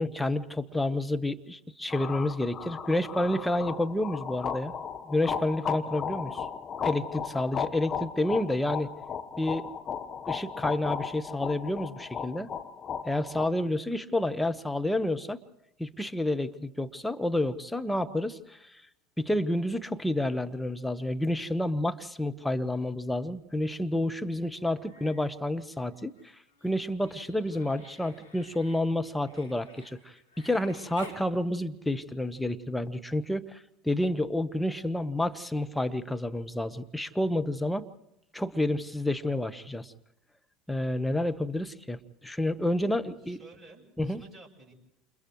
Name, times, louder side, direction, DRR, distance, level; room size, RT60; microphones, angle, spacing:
voice 1, 0.0-4.7 5.1-6.5 6.8-8.9 9.4-9.7 10.3-12.5 13.0-15.4 15.8-18.8 19.2-26.1 26.6-37.9 38.3-39.9 40.7-43.4 44.0-44.2, left 1 dB, 5° left, 9 dB, 1.3 m, -29 dB
sound 1, 1.9-13.5, left 7 dB, 30° left, 1.3 m, -35 dB
Human voice, 24.6-25.3 25.6-31.3 32.8-32.9, left 3 dB, 85° left, 3.0 m, -51 dB
voice 2, 43.0-44.7, right 2 dB, 15° right, -3 dB, 7.9 m, -53 dB
29.0 x 28.5 x 3.2 m, 0.87 s
figure-of-eight pair, 70°, 0 cm